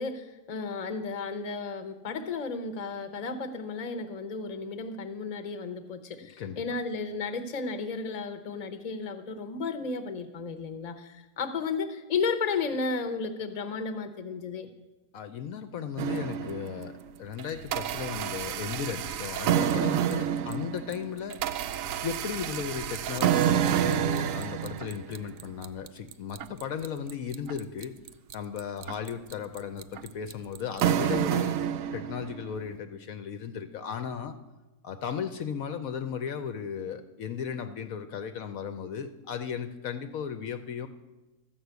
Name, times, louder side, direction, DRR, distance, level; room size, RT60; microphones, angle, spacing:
voice 1, 0.0-14.7, left 4 dB, 30° left, 8 dB, 0.8 m, -33 dB
voice 2, 15.1-16.9 17.2-21.6 22.0-27.9 28.3-31.6 31.9-34.3 34.8-40.9, left 7 dB, 65° left, 8 dB, 1.0 m, -36 dB
sound 1, 16.0-16.9 17.4-32.4, right 10 dB, 70° right, 0.8 m, -29 dB
13.0 x 6.1 x 8.0 m, 1.1 s
omnidirectional pair, 1.7 m